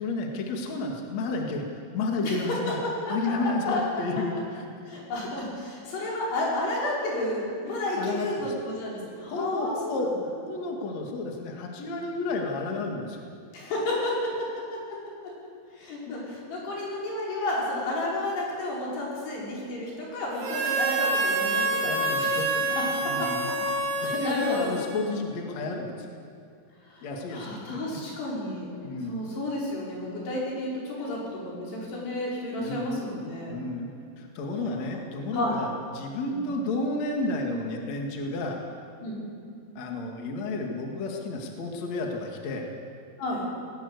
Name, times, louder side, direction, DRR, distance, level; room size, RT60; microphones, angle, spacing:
voice 1, 0.0-1.6 1.9-2.8 3.1-4.7 7.7-8.5 9.3-10.1 10.3-13.2 16.1-16.2 21.8-22.8 23.0-23.5 23.9-26.1 27.0-28.0 28.8-29.2 32.6-33.0 33.5-38.6 39.8-42.6, left 2 dB, 50° left, 1 dB, 2.9 m, -31 dB
voice 2, 4.9-10.1 13.5-14.3 14.7-15.0 15.8-21.9 22.2-22.3 23.2-23.3 24.0-24.7 25.0-25.1 27.3-28.7 29.1-33.5 35.3-35.6 36.2-36.4 39.0-39.2 43.2-43.5, left 1 dB, 85° left, -5 dB, 7.3 m, -31 dB
Harmonica, 20.4-25.2, right 3 dB, 50° right, 4.0 m, -27 dB
19.5 x 18.0 x 8.2 m, 2.5 s
omnidirectional pair, 4.6 m